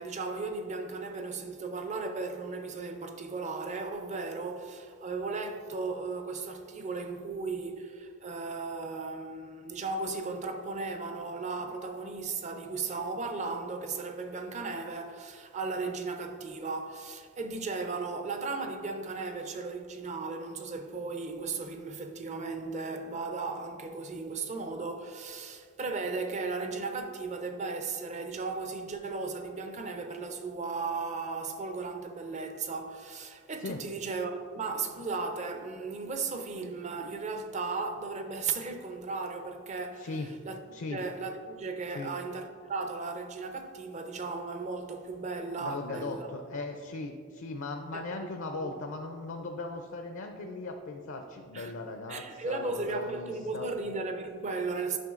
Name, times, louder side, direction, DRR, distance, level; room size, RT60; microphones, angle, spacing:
voice 1, 0.0-40.1 40.4-40.6 40.9-46.3 47.9-48.0 48.6-48.8 51.5-51.7 52.1-55.0, right 4 dB, 35° right, 0.5 m, -36 dB
voice 2, 40.0-40.3 40.7-41.0 41.9-42.1 45.6-53.7, left 3 dB, 60° left, 0.5 m, -38 dB
9.0 x 5.5 x 2.4 m
head